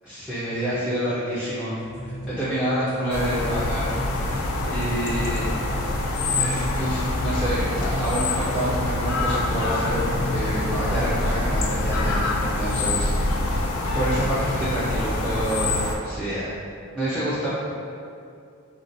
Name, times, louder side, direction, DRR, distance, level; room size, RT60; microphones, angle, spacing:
voice 1, 0.0-5.5 6.4-13.6 13.9-16.5 16.9-17.5, right 1 dB, 5° right, -12 dB, 0.3 m, -28 dB
sound 1, 1.8-3.1 3.3-4.2 4.6-4.8 5.1-5.4 5.7-5.9 6.2-6.9 7.8-8.4 8.6-9.0 10.2-10.5 13.9-14.0 14.4-14.6, right 1 dB, 50° right, 0.6 m, -35 dB
sound 2, 3.1-16.0, left 2 dB, 85° left, 0.3 m, -25 dB
2.6 x 2.1 x 2.5 m, 2.4 s
head